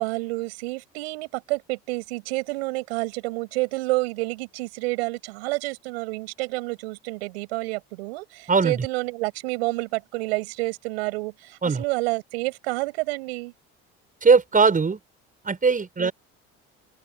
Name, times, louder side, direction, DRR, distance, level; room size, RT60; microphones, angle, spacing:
voice 1, 0.0-13.5 16.0-16.1, right 24 dB, 90° right, 7.7 m, -29 dB
voice 2, 14.2-15.0 15.5-16.1, right 5 dB, 25° right, 7.2 m, -19 dB
open air
supercardioid pair, 85°, 30 cm